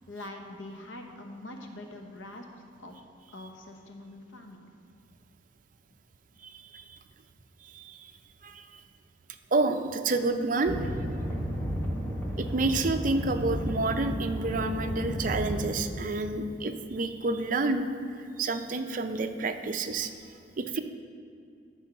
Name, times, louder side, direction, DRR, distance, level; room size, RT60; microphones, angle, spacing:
voice 1, 0.1-2.9 3.3-4.6, left 1 dB, 90° left, 3 dB, 1.0 m, -44 dB
voice 2, 6.4-6.8 7.7-8.0 8.4-8.6 9.5-10.8 12.4-17.8 18.4-20.1 20.6-20.8, right 3 dB, 45° right, 7 dB, 0.6 m, -29 dB
sound 1, 10.7-15.7, equal, 10° left, 1.0 m, -32 dB
12.5 x 4.5 x 5.9 m, 2.5 s
head